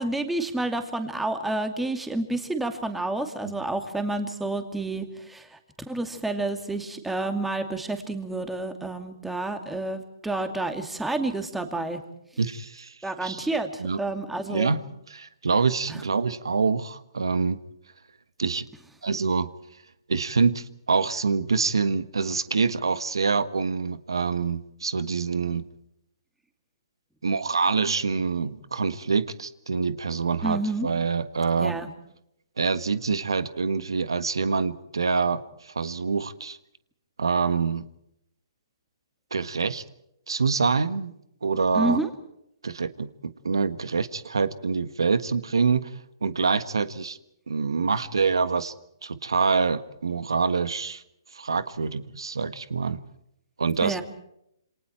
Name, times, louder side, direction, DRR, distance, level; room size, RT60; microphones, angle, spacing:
voice 1, 0.0-5.6 5.9-12.0 13.0-14.8 15.9-16.0 30.4-30.9 31.6-31.9 41.7-42.1 53.8-54.0, right 2 dB, 5° right, 7 dB, 2.5 m, -29 dB
voice 2, 12.4-12.9 13.2-13.4 13.8-14.0 14.5-14.8 15.1-17.6 18.4-18.6 19.0-19.5 20.1-25.6 27.2-31.7 32.6-36.6 37.2-37.8 39.3-39.8 40.3-41.1 41.4-42.0 42.6-45.9 46.2-47.2 47.5-48.7 49.0-51.0 51.3-53.0 53.6-54.0, right 5 dB, 90° right, 13 dB, 1.6 m, -25 dB
28.5 x 26.5 x 4.6 m, 0.76 s
hypercardioid pair, 150°, 2 cm